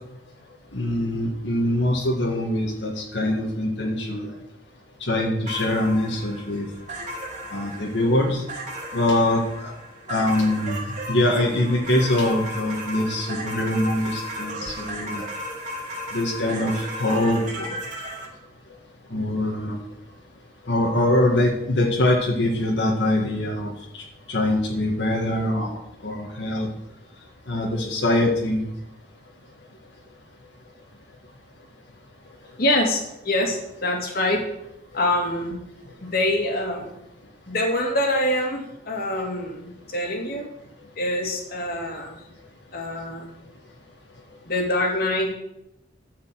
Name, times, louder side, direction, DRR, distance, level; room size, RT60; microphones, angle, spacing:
voice 1, 0.7-4.3 5.1-6.7 7.5-8.4 8.9-9.7 10.1-10.8 11.1-15.2 16.1-17.7 19.1-19.8 20.7-23.7 24.3-26.7 27.5-28.6, left 1 dB, 80° left, -1 dB, 2.0 m, -23 dB
sound 1, 5.5-18.3, equal, 45° right, 3.6 m, -35 dB
voice 2, 32.6-34.5 34.9-35.6 36.0-36.9 37.5-40.5 41.0-42.2 42.7-43.3 44.5-45.4, left 1 dB, 55° left, 1 dB, 2.5 m, -25 dB
12.5 x 5.6 x 7.6 m, 0.84 s
head